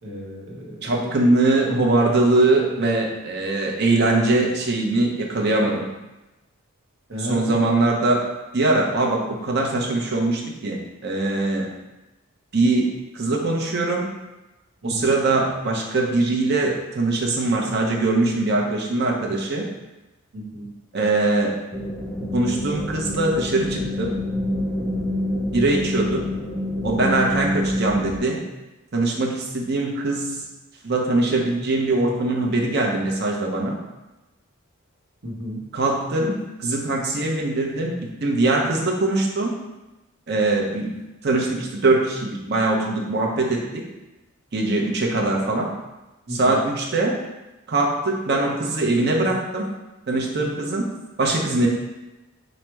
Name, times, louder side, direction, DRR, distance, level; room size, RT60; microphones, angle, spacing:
voice 1, 0.0-1.3 7.1-7.5 14.8-15.1 20.3-20.7 35.2-35.6 46.3-46.6, equal, 65° right, -3 dB, 1.0 m, -33 dB
voice 2, 0.8-5.8 7.2-11.7 12.5-14.1 14.8-19.7 20.9-21.6 22.3-24.2 25.5-26.3 26.8-28.4 28.9-30.4 30.8-33.8 35.7-39.5 40.3-41.0 41.2-43.8 44.5-45.7 46.3-47.2 47.7-49.7 50.1-50.9 51.2-51.7, right 2 dB, 50° right, 0 dB, 0.7 m, -22 dB
sound 1, 21.7-28.2, left 1 dB, 5° left, 0.3 m, -26 dB
4.8 x 2.1 x 4.5 m, 1.0 s
head